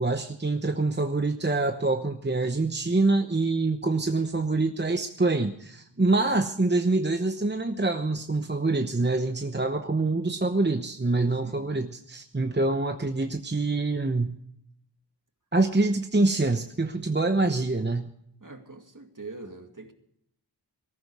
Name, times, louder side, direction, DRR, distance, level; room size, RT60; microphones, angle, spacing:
voice 1, 0.0-14.4 15.5-18.1, right 2 dB, 25° right, 7 dB, 0.9 m, -25 dB
voice 2, 18.4-19.9, right 3 dB, 50° right, 5 dB, 2.3 m, -43 dB
18.5 x 14.5 x 4.8 m, 0.72 s
wide cardioid pair, 50°, 42 cm